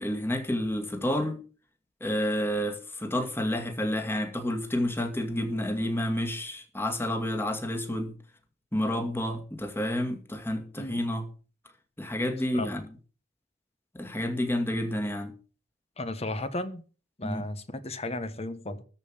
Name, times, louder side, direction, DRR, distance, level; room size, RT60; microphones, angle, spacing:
voice 1, 0.0-1.4 2.0-8.2 8.7-11.3 12.0-12.8 13.9-15.3 17.2-17.4, left 1 dB, 15° left, 2.2 m, -30 dB
voice 2, 16.0-16.8 17.2-18.8, left 1 dB, 35° left, 1.3 m, -34 dB
13.5 x 5.5 x 8.9 m
head